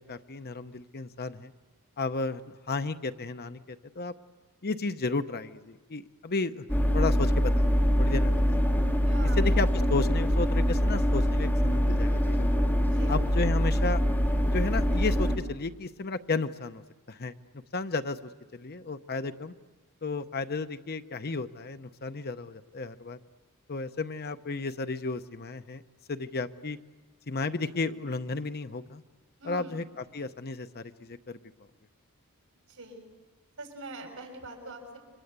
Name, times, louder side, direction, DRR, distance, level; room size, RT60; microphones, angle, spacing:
voice 1, 0.0-1.5 2.0-4.1 4.6-8.8 9.4-12.6 13.1-14.1 14.4-17.3 17.7-19.5 20.0-23.2 23.7-25.8 26.1-26.8 27.3-29.0 29.4-31.4, left 3 dB, 45° left, 10 dB, 0.8 m, -33 dB
sound 1, 6.7-15.4, equal, 10° left, 2.7 m, -24 dB
voice 2, 9.0-9.5 12.9-13.2 29.4-29.8 32.7-33.1 33.6-35.0, right 2 dB, 70° right, 3 dB, 6.8 m, -43 dB
29.5 x 24.5 x 8.2 m, 1.3 s
head